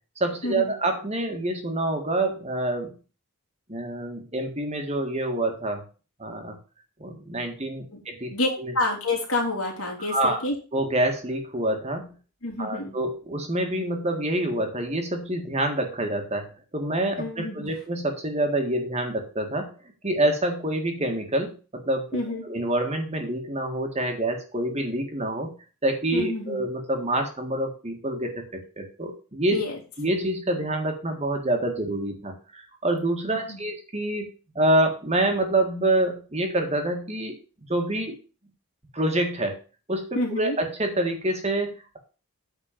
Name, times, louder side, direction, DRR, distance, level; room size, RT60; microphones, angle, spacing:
voice 1, 0.2-2.9 3.7-5.8 6.2-6.6 7.0-8.3 8.6-8.7 10.1-10.4 10.7-12.1 12.6-16.5 16.7-19.7 20.0-25.5 25.8-29.6 30.0-34.3 34.5-37.4 37.7-38.1 38.9-39.6 39.9-42.0, right 1 dB, 30° right, 3 dB, 1.7 m, -27 dB
voice 2, 8.3-10.5 12.4-12.9 17.2-17.7 22.1-22.4 26.1-26.6 29.5-29.8 33.5-33.6 40.1-40.6, left 2 dB, 70° left, 0 dB, 3.3 m, -28 dB
8.9 x 4.3 x 7.2 m, 0.35 s
head